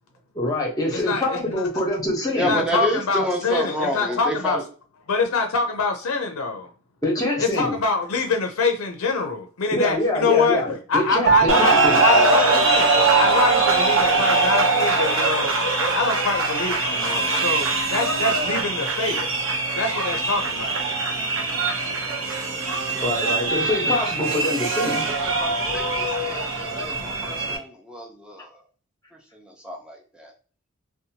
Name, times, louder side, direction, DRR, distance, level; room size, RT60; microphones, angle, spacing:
voice 1, 0.3-2.6 7.0-7.8 9.7-12.0 23.0-25.1, left 1 dB, 15° left, 0.9 m, -25 dB
voice 2, 0.9-1.4 2.5-4.6 5.1-6.7 7.4-10.6 10.9-12.9 13.2-15.5 15.9-19.2 19.8-20.8, left 4 dB, 85° left, 0.5 m, -25 dB
voice 3, 2.3-4.6 23.3-23.9 25.0-28.5 29.3-30.3, equal, 5° right, 0.6 m, -30 dB
Piano, 11.3-20.9, right 6 dB, 50° right, 0.4 m, -31 dB
sound 1, 11.5-27.6, right 3 dB, 70° right, 0.8 m, -22 dB
2.7 x 2.2 x 2.8 m
head